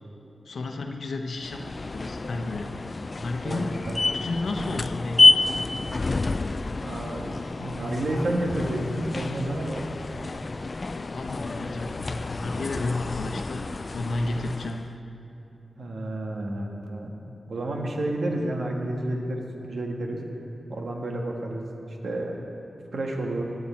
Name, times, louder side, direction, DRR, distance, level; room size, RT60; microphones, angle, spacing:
voice 1, 0.4-2.7 3.2-3.8 4.1-5.6 10.9-13.7 13.9-14.8, left 2 dB, 80° left, 3 dB, 0.9 m, -32 dB
sound 1, 1.4-14.9, left 3 dB, 45° left, 0.3 m, -28 dB
voice 2, 6.7-9.8 15.8-17.1 17.5-20.2 20.7-22.4 22.9-23.4, right 1 dB, 75° right, 1 dB, 1.5 m, -30 dB
17.5 x 11.0 x 4.4 m, 2.9 s
wide cardioid pair, 80°, 0 cm